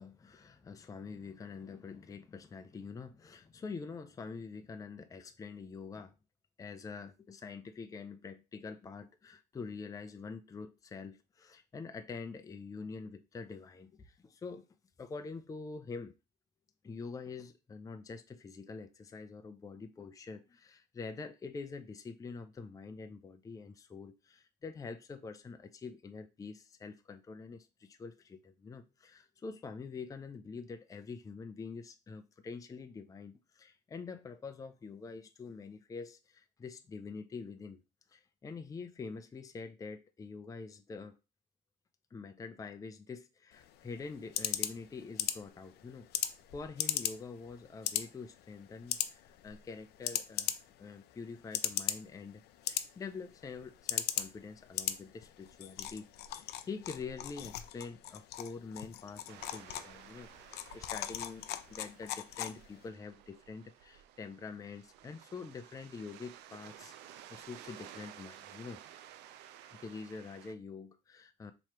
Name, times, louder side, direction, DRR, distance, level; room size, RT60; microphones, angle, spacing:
voice 1, 0.0-6.1 6.6-14.6 15.0-16.1 16.8-37.8 38.1-41.1 42.1-50.5 50.8-52.4 52.7-68.8 69.7-71.5, left 4 dB, 20° left, 0.5 m, -46 dB
sound 1, 43.5-62.9, left 12 dB, 75° left, 0.4 m, -39 dB
sound 2, 59.3-70.5, right 11 dB, 85° right, 0.4 m, -54 dB
3.1 x 2.9 x 4.5 m
cardioid pair, 110°, 17 cm